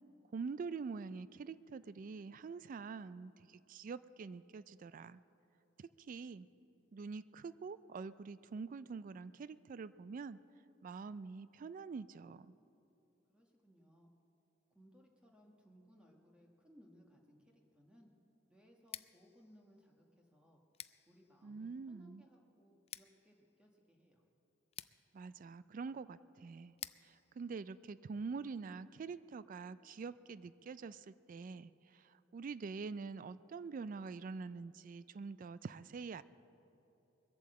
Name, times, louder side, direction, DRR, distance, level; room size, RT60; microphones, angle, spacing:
voice 1, 0.3-5.2 5.8-6.5 6.9-10.4 10.8-12.5 21.4-22.2 25.1-26.7 27.0-36.2, right 4 dB, 45° right, 16 dB, 0.3 m, -45 dB
voice 2, 13.3-14.1 14.7-18.1 18.5-20.6 21.1-24.2, equal, 5° right, 0 dB, 1.3 m, -65 dB
Scissors, 18.8-28.6, left 11 dB, 30° left, 0.3 m, -56 dB
21.5 x 8.4 x 7.5 m, 3.0 s
head